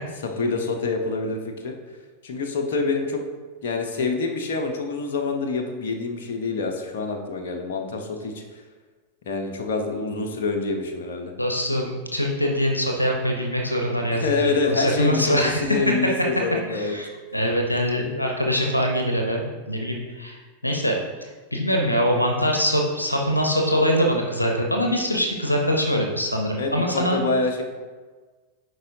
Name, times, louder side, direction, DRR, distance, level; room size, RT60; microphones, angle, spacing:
voice 1, 0.2-1.7 2.2-3.2 3.6-8.4 9.3-11.3 14.1-16.9 26.6-27.6, left 3 dB, 55° left, 3 dB, 0.8 m, -26 dB
voice 2, 11.4-14.3 14.7-15.7 16.7-20.4 20.6-21.0 21.5-27.2, equal, 85° left, 1 dB, 0.8 m, -23 dB
10.5 x 4.7 x 2.7 m, 1.4 s
figure-of-eight pair, 90°, 0 cm